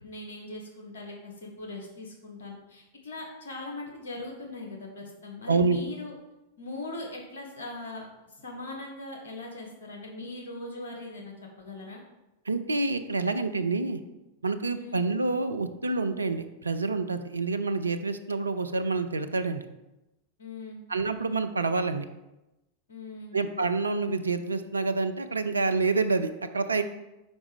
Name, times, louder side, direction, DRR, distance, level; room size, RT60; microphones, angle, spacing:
voice 1, 0.0-6.1 6.6-8.1 8.4-12.0 14.6-15.1 20.4-20.8 22.9-23.4, left 2 dB, 65° left, 0 dB, 1.6 m, -40 dB
voice 2, 5.5-5.8 12.5-14.0 14.4-19.7 20.9-22.1 23.3-26.8, right 3 dB, 75° right, 9 dB, 0.4 m, -27 dB
5.2 x 4.8 x 5.1 m, 0.97 s
figure-of-eight pair, 90°, 0 cm